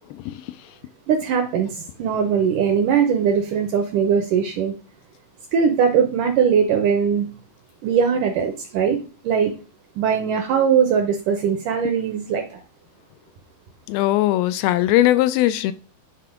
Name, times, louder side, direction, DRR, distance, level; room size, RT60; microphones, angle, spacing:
voice 1, 1.1-4.7 5.5-7.3 7.8-9.0 9.2-9.5 10.0-12.6, right 7 dB, 75° right, 2.0 m, -20 dB
voice 2, 13.9-15.7, left 14 dB, 80° left, 2.3 m, -19 dB
9.5 x 3.4 x 4.9 m
omnidirectional pair, 4.5 m